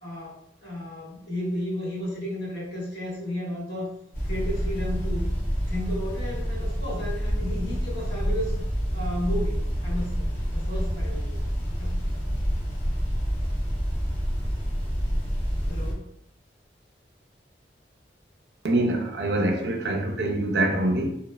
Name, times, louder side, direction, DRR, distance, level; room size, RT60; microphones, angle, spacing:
voice 1, 0.0-3.9 4.2-5.3 5.7-8.6 8.9-11.4 11.8-12.0 15.7-16.1, equal, 70° left, 1.2 m, -33 dB
sound 1, 4.1-15.9, equal, 50° left, 0.9 m, -28 dB
voice 2, 18.6-21.1, right 1 dB, 70° right, 0.4 m, -24 dB
2.8 x 2.0 x 2.2 m
head